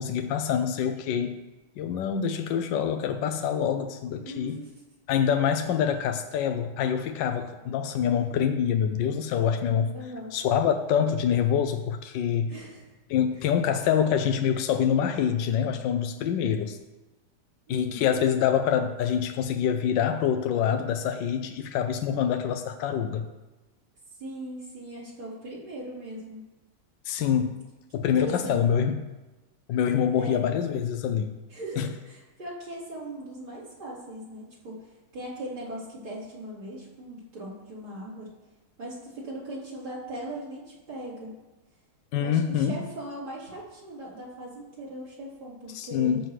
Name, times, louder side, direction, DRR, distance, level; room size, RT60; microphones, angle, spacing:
voice 1, 0.0-1.4 1.8-4.6 5.1-10.0 10.3-12.6 13.1-16.8 17.7-23.2 27.0-27.5 27.9-29.0 29.7-31.3 31.8-31.9 42.1-42.8 45.7-46.2, left 8 dB, 75° left, 7 dB, 1.1 m, -25 dB
voice 2, 4.2-4.8 9.9-10.3 12.5-12.8 13.4-13.5 17.7-18.1 22.1-22.2 24.2-26.4 28.1-28.7 30.0-30.5 31.5-38.3 38.8-41.3 42.2-46.2, right 1 dB, 65° right, -9 dB, 4.5 m, -39 dB
13.5 x 7.6 x 3.2 m, 1.1 s
omnidirectional pair, 2.4 m